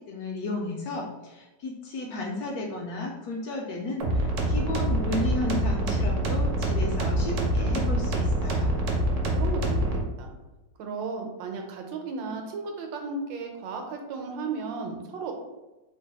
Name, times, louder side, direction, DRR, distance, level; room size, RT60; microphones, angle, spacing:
voice 1, 0.0-8.8, left 2 dB, 70° left, 0 dB, 0.9 m, -33 dB
sound 1, 4.0-10.0, right 1 dB, 65° right, 0.7 m, -25 dB
voice 2, 9.0-10.3 10.8-15.3, right 4 dB, 85° right, 3 dB, 1.4 m, -35 dB
3.2 x 2.2 x 4.0 m, 1.1 s
omnidirectional pair, 2.0 m